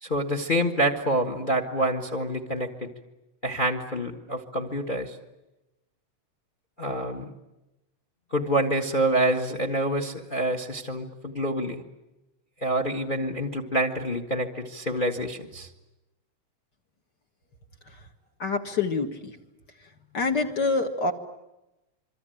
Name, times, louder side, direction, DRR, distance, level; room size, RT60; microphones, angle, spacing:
voice 1, 0.0-2.9 3.4-5.1 6.8-7.3 8.3-11.8 12.6-15.7, right 1 dB, 25° left, 6 dB, 1.2 m, -27 dB
voice 2, 18.4-19.3 20.1-21.1, left 4 dB, 40° left, 4 dB, 2.0 m, -26 dB
26.5 x 24.0 x 9.1 m, 0.96 s
omnidirectional pair, 3.3 m